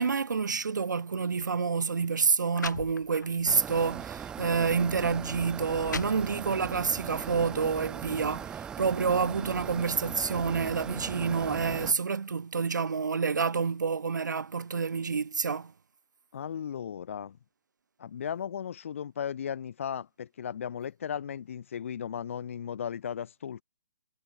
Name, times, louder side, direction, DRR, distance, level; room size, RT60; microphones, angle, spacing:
voice 1, 0.0-15.7, right 5 dB, 90° right, 2.1 m, -28 dB
sound 1, 1.3-1.5 2.2-2.3 2.5-3.5 4.0-4.2 5.0-5.1 5.6-6.7, left 5 dB, 80° left, 4.0 m, -39 dB
sound 2, 3.5-11.9, right 8 dB, 10° right, 2.0 m, -39 dB
voice 2, 16.3-17.4 18.0-23.6, left 8 dB, 45° left, 1.5 m, -36 dB
hypercardioid pair, 170°, 10 cm